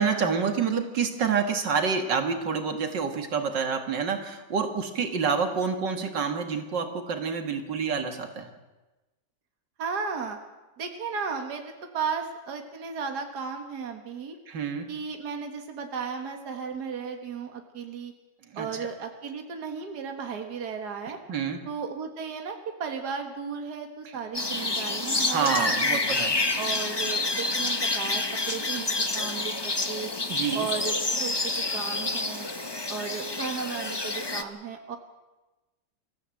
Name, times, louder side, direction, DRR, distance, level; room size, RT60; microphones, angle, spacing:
voice 1, 0.0-8.5 14.5-14.9 18.5-18.7 21.3-21.6 24.1-24.2 25.3-26.4 30.3-30.7, right 6 dB, 80° right, 5 dB, 2.5 m, -28 dB
voice 2, 9.8-10.4 10.8-14.4 14.9-18.1 18.6-21.2 21.7-26.0 26.6-30.1 30.5-32.5 32.9-35.0, right 5 dB, 65° right, 4 dB, 2.2 m, -35 dB
sound 1, 24.3-34.4, left 2 dB, 20° left, 0.9 m, -28 dB
25.0 x 15.0 x 7.8 m, 1.1 s
omnidirectional pair, 1.9 m